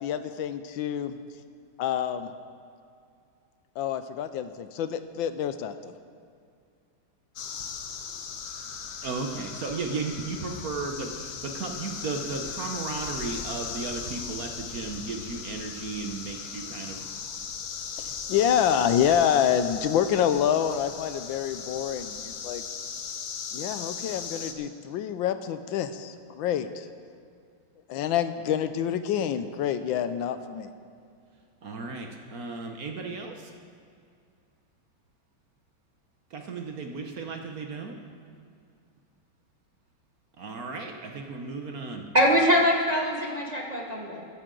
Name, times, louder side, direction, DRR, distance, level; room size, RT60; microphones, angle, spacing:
voice 1, 0.0-1.2 1.8-2.3 3.8-5.9 18.0-22.6 23.5-26.9 27.9-30.7, left 9 dB, 80° left, 11 dB, 1.3 m, -27 dB
sound 1, 7.4-24.5, left 6 dB, 60° left, 1.2 m, -38 dB
voice 2, 9.0-17.0 31.6-33.5 36.3-38.0 40.4-42.0, right 4 dB, 55° right, 3 dB, 1.2 m, -35 dB
voice 3, 42.1-44.3, equal, 30° right, -2 dB, 0.9 m, -23 dB
14.5 x 14.0 x 3.8 m, 2.3 s
omnidirectional pair, 2.2 m